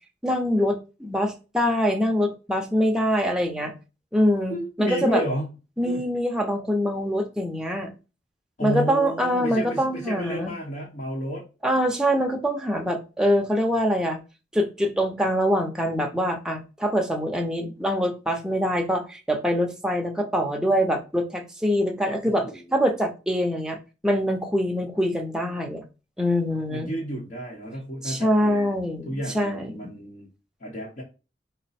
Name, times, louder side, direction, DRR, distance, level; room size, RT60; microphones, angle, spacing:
voice 1, 0.2-3.7 4.1-5.2 5.8-7.9 8.6-10.5 11.6-14.2 14.5-22.5 22.7-23.8 24.0-25.8 26.2-26.9 28.0-29.9, equal, 5° right, 3 dB, 0.6 m, -24 dB
voice 2, 4.5-5.5 5.8-6.0 8.6-11.4 22.4-22.6 26.7-28.7 29.1-30.3 30.6-31.0, equal, 45° left, -2 dB, 0.9 m, -31 dB
4.9 x 2.1 x 4.1 m, 0.31 s
head